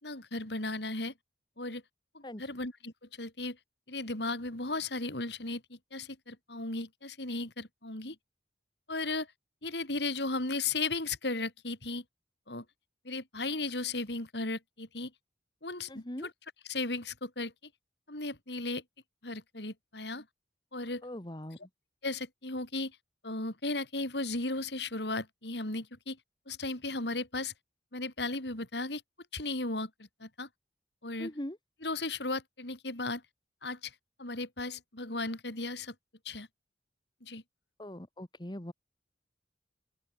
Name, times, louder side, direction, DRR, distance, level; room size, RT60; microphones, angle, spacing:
voice 1, 0.0-1.1 1.6-1.8 2.1-3.6 3.9-8.2 8.9-9.3 9.6-12.0 12.5-12.6 13.0-15.1 15.6-16.3 16.7-17.5 18.1-18.8 19.2-20.3 20.7-21.0 22.0-23.0 23.2-26.2 26.5-27.5 27.9-29.0 29.3-30.5 31.0-31.3 31.8-33.2 33.6-33.9 34.2-35.9 36.2-36.5 37.2-37.4, left 2 dB, 70° left, 4.8 m, -36 dB
voice 2, 15.9-16.3 21.0-21.7 31.2-31.6 37.8-38.7, left 1 dB, 25° left, 1.9 m, -41 dB
open air
head